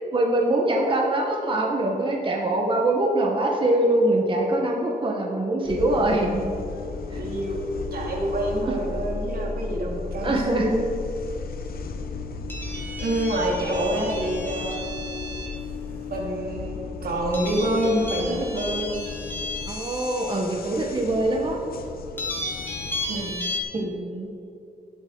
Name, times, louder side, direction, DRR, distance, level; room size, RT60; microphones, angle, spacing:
voice 1, 0.1-6.5 7.1-7.2 8.7-8.8 10.2-10.7 19.6-21.6 23.7-24.3, right 1 dB, 35° right, 0 dB, 1.3 m, -23 dB
sound 1, 5.6-23.4, left 4 dB, 75° left, 0.9 m, -35 dB
voice 2, 7.2-10.9 13.0-14.9 16.1-19.0 23.1-23.4, right 1 dB, 80° right, -1 dB, 2.3 m, -27 dB
sound 2, 12.5-15.6 17.3-20.3 21.0-21.1 22.2-23.6, left 1 dB, 15° left, 2.2 m, -34 dB
18.5 x 8.2 x 4.0 m, 2.6 s
wide cardioid pair, 140°, 16 cm